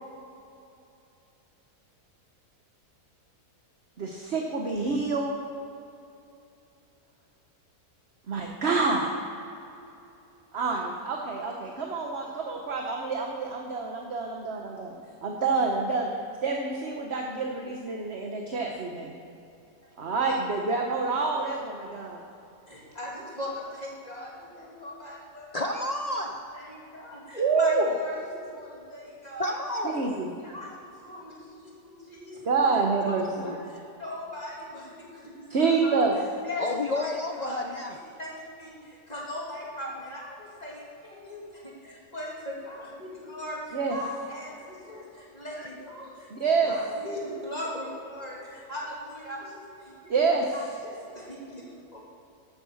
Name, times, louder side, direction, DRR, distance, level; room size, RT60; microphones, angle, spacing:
voice 1, 4.0-5.4 8.3-9.1 10.5-14.9 15.2-16.1 16.4-19.1 20.0-22.2 27.4-27.8 29.9-30.3 32.4-33.5 35.5-36.2 43.7-44.0 46.3-46.7 50.1-50.5, right 4 dB, 45° right, 1 dB, 1.3 m, -27 dB
voice 2, 22.7-25.9 26.5-29.6 29.9-30.1 30.4-31.4 31.6-32.4 33.0-36.0 36.4-37.6 37.9-50.1 50.5-52.0, left 1 dB, 25° left, -5 dB, 2.8 m, -39 dB
voice 3, 25.5-26.6 29.4-30.1 33.4-33.6 36.6-37.9, left 2 dB, 80° left, 3 dB, 0.3 m, -31 dB
12.0 x 8.7 x 7.2 m, 2.7 s
omnidirectional pair, 1.7 m